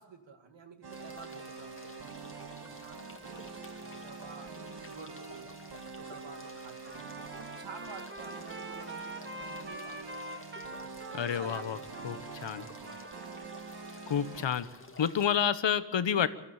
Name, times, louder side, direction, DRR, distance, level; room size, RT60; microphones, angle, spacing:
voice 1, 0.0-2.1 2.4-5.6 5.8-7.1 7.4-10.1 10.8-12.2 12.5-12.9, right 4 dB, 85° right, 6 dB, 2.3 m, -51 dB
sound 1, 0.8-14.5, right 4 dB, 60° right, 1.9 m, -45 dB
sound 2, 0.9-15.4, left 2 dB, 30° left, 2.1 m, -53 dB
Trumpet, 6.8-14.0, right 1 dB, 25° right, 1.4 m, -45 dB
voice 2, 11.2-11.8 12.0-12.6 14.1-14.7 15.0-16.3, left 8 dB, 85° left, 14 dB, 1.1 m, -29 dB
22.5 x 13.5 x 8.6 m, 0.95 s
wide cardioid pair, 70°, 43 cm